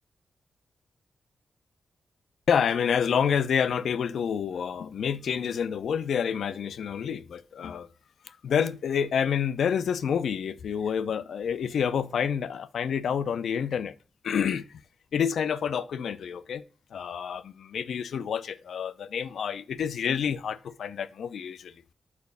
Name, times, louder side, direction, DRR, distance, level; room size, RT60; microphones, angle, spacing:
voice 1, 2.5-7.9 8.3-13.9 14.2-14.7 15.1-16.6 16.9-21.7, left 7 dB, 70° left, 0.4 m, -28 dB
4.7 x 4.2 x 5.3 m
wide cardioid pair, 170°, 0 cm